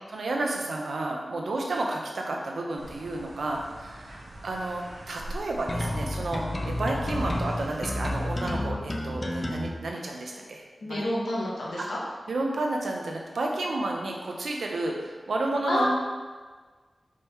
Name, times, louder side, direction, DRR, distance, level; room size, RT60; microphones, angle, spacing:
voice 1, 0.1-10.6 10.9-11.0 11.8-11.9 12.3-15.9, right 2 dB, 85° right, 0 dB, 0.9 m, -31 dB
sound 1, 2.8-8.6, right 1 dB, 65° right, 1.3 m, -44 dB
sound 2, 5.7-9.7, left 1 dB, 25° left, 0.7 m, -30 dB
voice 2, 10.8-12.0 15.7-15.9, left 1 dB, 85° left, -4 dB, 1.4 m, -28 dB
5.1 x 3.6 x 5.6 m, 1.4 s
wide cardioid pair, 90°, 0 cm